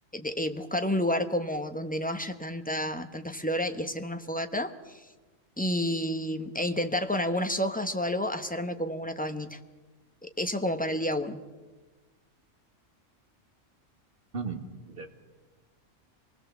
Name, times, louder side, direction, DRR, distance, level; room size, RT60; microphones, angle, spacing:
voice 1, 0.1-5.0 5.6-9.6 10.2-11.4, left 1 dB, 5° left, 7 dB, 1.0 m, -30 dB
voice 2, 14.3-15.1, right 4 dB, 45° right, 5 dB, 2.2 m, -36 dB
25.5 x 20.5 x 7.2 m, 1.3 s
omnidirectional pair, 1.3 m